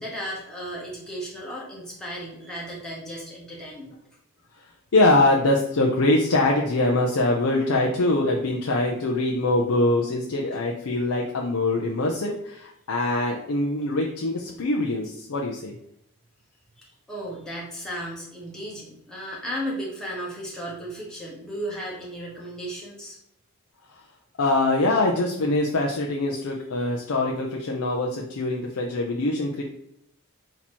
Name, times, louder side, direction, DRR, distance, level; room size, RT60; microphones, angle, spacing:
voice 1, 0.0-4.0 16.8-23.2, equal, 5° left, -6 dB, 1.1 m, -35 dB
voice 2, 4.9-15.7 23.9-24.0 24.4-29.6, left 2 dB, 80° left, -1 dB, 0.6 m, -23 dB
4.2 x 2.9 x 4.3 m, 0.75 s
head